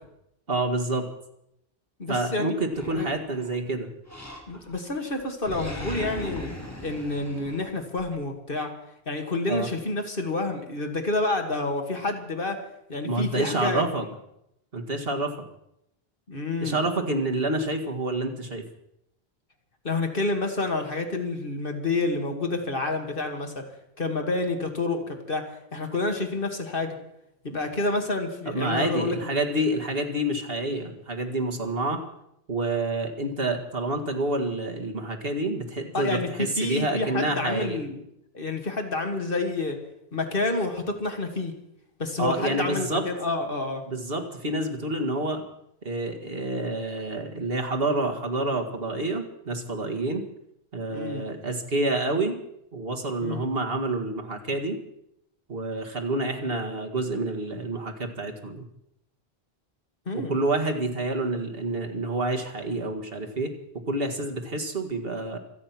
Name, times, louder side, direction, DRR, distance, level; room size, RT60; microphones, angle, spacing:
voice 1, 0.5-1.1 2.1-3.9 9.5-9.7 13.0-14.0 14.7-15.3 16.6-18.6 28.5-32.0 32.5-37.8 42.2-43.1 43.9-45.4 45.8-50.2 50.7-52.4 52.7-54.8 55.5-58.7 60.1-63.5 63.9-65.4, right 2 dB, 65° right, 4 dB, 2.2 m, -28 dB
voice 2, 2.0-2.5 2.9-3.1 4.5-6.5 6.8-8.7 9.1-12.6 12.9-13.8 16.3-16.8 19.8-23.6 24.0-27.0 27.4-29.2 35.9-38.0 38.3-39.8 40.1-41.6 42.0-43.8 50.9-51.2 53.2-53.4 60.1-60.3, left 2 dB, 60° left, 4 dB, 2.4 m, -28 dB
Animal, 2.7-3.6 4.1-4.8 5.1-8.1, left 1 dB, 15° left, 2.7 m, -38 dB
26.5 x 9.0 x 6.1 m, 0.78 s
omnidirectional pair, 1.0 m